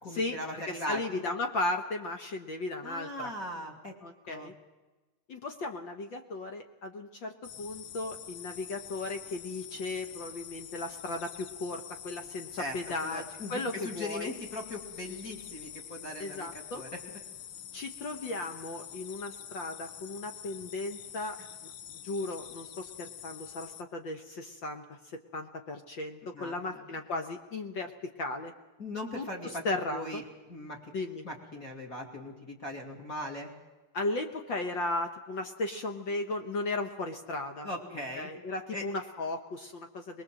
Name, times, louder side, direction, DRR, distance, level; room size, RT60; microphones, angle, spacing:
voice 1, 0.0-1.2 2.8-3.9 4.3-4.5 12.5-12.8 13.0-17.0 26.3-26.8 28.8-29.6 29.9-30.2 30.5-30.8 31.2-33.5 37.6-38.3 38.7-38.8, left 1 dB, 30° left, 2 dB, 2.9 m, -39 dB
voice 2, 0.7-3.3 4.0-4.5 5.3-14.3 16.2-16.8 17.7-21.7 22.0-28.5 29.1-30.2 30.9-31.2 33.9-37.7 38.1-40.2, left 2 dB, 55° left, 5 dB, 1.4 m, -36 dB
sound 1, 7.4-23.8, left 10 dB, 90° left, 1.1 m, -46 dB
23.5 x 21.0 x 7.7 m, 1.2 s
omnidirectional pair, 3.6 m